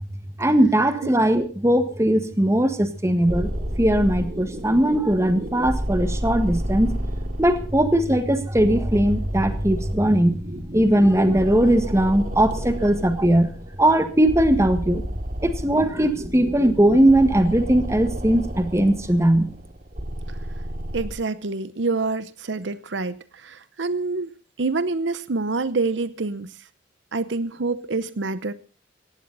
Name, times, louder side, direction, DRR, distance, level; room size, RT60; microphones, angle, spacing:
voice 1, 0.4-3.5 3.8-6.9 7.4-10.4 10.7-13.5 13.8-15.0 15.4-19.5, right 1 dB, 15° right, 9 dB, 1.6 m, -19 dB
sound 1, 3.3-21.1, equal, 50° right, 2.5 m, -31 dB
voice 2, 20.9-26.5 27.1-28.5, right 3 dB, 70° right, 15 dB, 0.8 m, -27 dB
17.5 x 15.5 x 4.0 m, 0.35 s
head